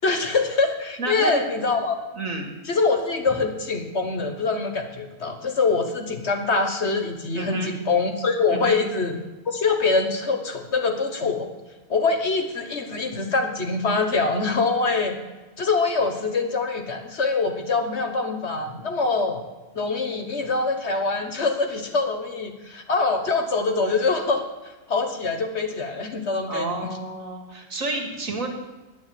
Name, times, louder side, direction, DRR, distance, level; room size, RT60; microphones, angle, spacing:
voice 1, 0.0-1.9 2.7-9.2 9.5-11.5 11.9-15.2 15.6-19.4 19.7-24.4 24.9-26.9, left 4 dB, 50° left, 6 dB, 1.4 m, -24 dB
voice 2, 1.0-1.7 2.1-2.5 7.3-7.7 8.5-8.8 26.5-28.5, right 2 dB, 65° right, 2 dB, 2.6 m, -30 dB
9.8 x 8.0 x 9.2 m, 1.1 s
omnidirectional pair, 1.5 m